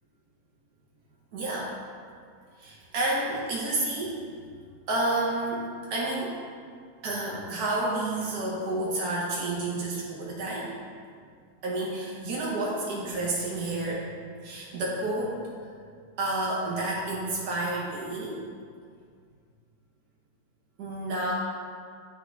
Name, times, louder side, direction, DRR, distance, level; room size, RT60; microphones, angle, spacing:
voice 1, 1.3-1.7 2.6-4.1 4.9-6.3 7.0-10.7 11.6-14.1 14.4-15.4 16.2-18.4 20.8-21.3, right 2 dB, 75° right, -4 dB, 1.5 m, -30 dB
8.2 x 4.6 x 4.6 m, 2.1 s
omnidirectional pair, 1.7 m